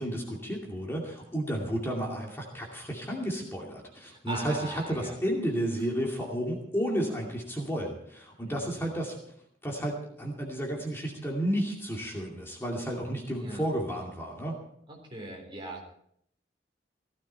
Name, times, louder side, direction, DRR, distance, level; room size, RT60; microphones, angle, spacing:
voice 1, 0.0-9.2 9.6-14.6, equal, 15° left, -1 dB, 2.4 m, -32 dB
voice 2, 4.0-5.2 8.4-8.9 13.4-13.7 14.9-15.9, right 2 dB, 30° right, 1 dB, 3.9 m, -40 dB
16.0 x 14.0 x 4.4 m, 0.69 s
head